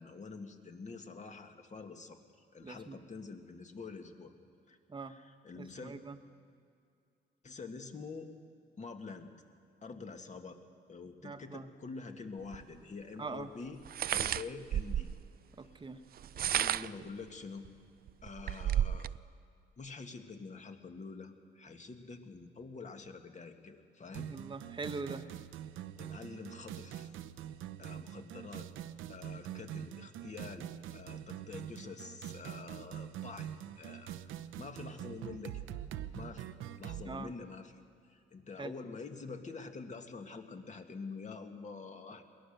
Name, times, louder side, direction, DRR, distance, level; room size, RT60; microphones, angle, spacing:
voice 1, 0.0-2.2 2.5-4.3 4.7-5.9 7.4-8.3 8.8-9.3 9.8-10.6 10.9-13.8 14.1-15.1 16.3-17.7 18.2-19.1 19.8-24.3 26.0-27.1 27.8-28.7 29.1-35.6 36.1-36.5 36.8-37.8 38.1-42.2, left 4 dB, 35° left, 5 dB, 2.0 m, -46 dB
voice 2, 2.6-3.0 4.9-5.1 5.6-6.2 11.2-11.6 13.2-13.5 15.6-16.0 24.3-25.3 37.0-37.3 38.6-38.7, right 4 dB, 25° right, 9 dB, 1.2 m, -42 dB
sound 1, 12.5-12.6 13.9-15.2 16.2-17.0 17.7-17.8 18.1-19.2, right 10 dB, 50° right, 0.4 m, -32 dB
sound 2, 24.1-37.1, right 10 dB, 85° right, 0.8 m, -44 dB
22.0 x 18.0 x 6.7 m, 2.5 s
cardioid pair, 90°, 20 cm